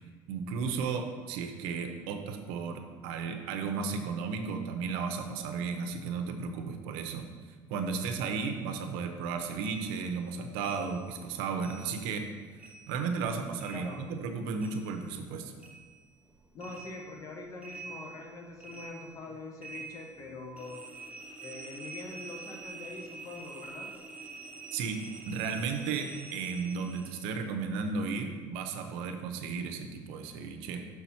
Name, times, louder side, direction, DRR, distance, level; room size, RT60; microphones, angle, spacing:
voice 1, 0.3-7.3 7.7-12.3 12.9-15.5 24.7-25.0 25.3-30.9, right 5 dB, 85° right, 5 dB, 0.8 m, -34 dB
sound 1, 9.6-12.3 12.6-15.3 15.6-27.4, right 3 dB, 15° right, 0.7 m, -47 dB
voice 2, 13.7-14.0 16.5-20.8 21.4-23.9, left 3 dB, 40° left, 1 dB, 1.3 m, -43 dB
6.4 x 5.8 x 4.4 m, 1.5 s
cardioid pair, 135°, 9 cm